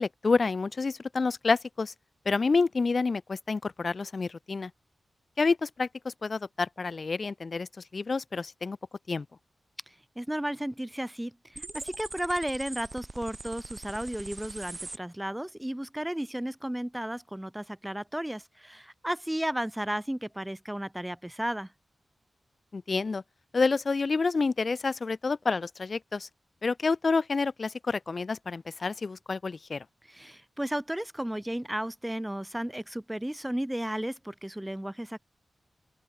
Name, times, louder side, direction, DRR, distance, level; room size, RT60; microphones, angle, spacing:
voice 1, 0.0-1.9 2.3-4.7 5.4-8.8 9.1-9.3 22.7-23.2 23.5-26.3 26.6-29.8, left 4 dB, 40° left, 2.3 m, -28 dB
voice 2, 10.2-21.7 30.1-35.2, right 1 dB, 5° right, 2.0 m, -34 dB
sound 1, 11.5-15.0, right 2 dB, 20° right, 4.7 m, -42 dB
open air
wide cardioid pair, 180°, 0 cm